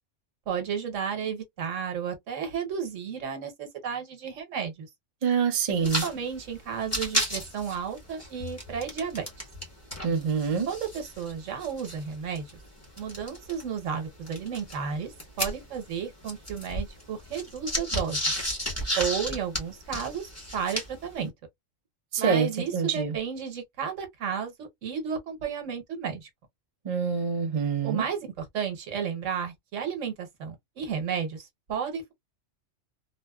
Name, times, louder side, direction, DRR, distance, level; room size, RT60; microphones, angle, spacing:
voice 1, 0.5-4.9 5.8-9.5 10.7-12.5 13.0-15.1 15.4-18.2 19.0-21.3 22.2-26.3 27.8-28.3 28.5-32.1, right 7 dB, 75° right, 1.2 m, -33 dB
voice 2, 5.2-6.0 10.0-10.7 22.1-23.2 26.8-28.0, right 6 dB, 45° right, 0.5 m, -26 dB
sound 1, 5.8-6.1 6.4-6.5 6.8-9.7 9.9-13.6 14.3-16.0 16.2-21.1, equal, 15° left, 1.0 m, -32 dB
2.9 x 2.1 x 2.2 m
omnidirectional pair, 1.3 m